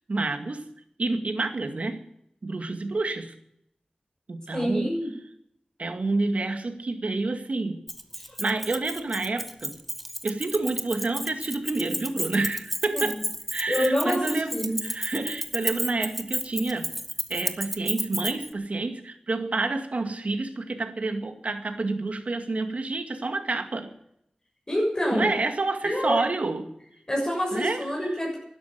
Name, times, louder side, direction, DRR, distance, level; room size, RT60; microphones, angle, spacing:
voice 1, 0.1-0.7 1.0-2.1 2.4-3.3 4.3-5.0 5.8-7.8 8.4-9.8 10.2-13.2 13.5-16.9 17.3-23.9 25.1-26.7 27.5-28.2, right 3 dB, 65° right, 7 dB, 2.1 m, -29 dB
voice 2, 4.5-5.1 12.9-13.0 13.7-14.8 24.7-25.3 25.8-26.2 27.1-28.4, equal, 30° left, -2 dB, 6.8 m, -26 dB
Keys jangling, 7.9-18.5, equal, ahead, 1.6 m, -32 dB
12.0 x 11.0 x 9.4 m, 0.74 s
wide cardioid pair, 50°, 2 cm